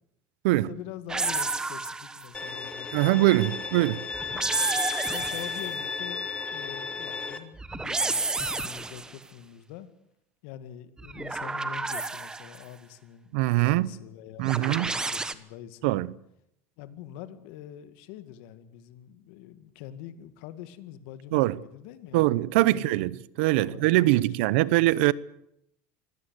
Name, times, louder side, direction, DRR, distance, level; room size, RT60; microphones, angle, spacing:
voice 1, 0.5-3.7 4.1-4.4 5.1-9.9 10.4-13.3 13.6-16.0 16.8-23.2 23.5-24.7, left 11 dB, 75° left, 2.1 m, -45 dB
sound 1, 1.1-2.4 4.1-5.8 7.6-9.2 11.0-12.6 14.5-15.3, right 3 dB, 10° right, 1.2 m, -31 dB
Bowed string instrument, 2.3-7.4, left 4 dB, 20° left, 2.2 m, -34 dB
voice 2, 2.9-4.1 13.3-13.9 14.4-14.9 15.8-16.1 21.3-21.6 22.1-23.1 23.4-25.1, right 18 dB, 85° right, 0.8 m, -22 dB
24.0 x 17.0 x 8.2 m
cardioid pair, 135°, 6 cm